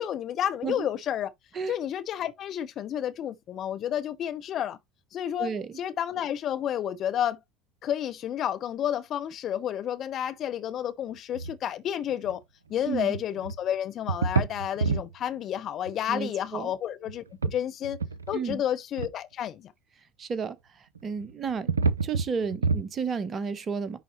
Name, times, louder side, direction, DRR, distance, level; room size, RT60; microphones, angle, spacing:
voice 1, 0.0-1.3 1.7-4.8 5.1-7.4 7.8-12.4 12.7-18.0 18.3-19.7, left 10 dB, 45° left, 0.8 m, -31 dB
voice 2, 5.4-5.7 12.8-13.1 16.1-16.7 18.3-18.6 20.2-21.7 22.0-24.0, right 5 dB, 35° right, 1.1 m, -32 dB
sound 1, 11.3-11.6 12.1-12.3 12.8-13.6 14.1-15.1 15.9-16.0 17.1-17.6 17.8-18.6 19.0-19.1 21.0-22.9, right 4 dB, 80° right, 0.5 m, -28 dB
10.5 x 4.2 x 3.1 m
figure-of-eight pair, 65°, 0 cm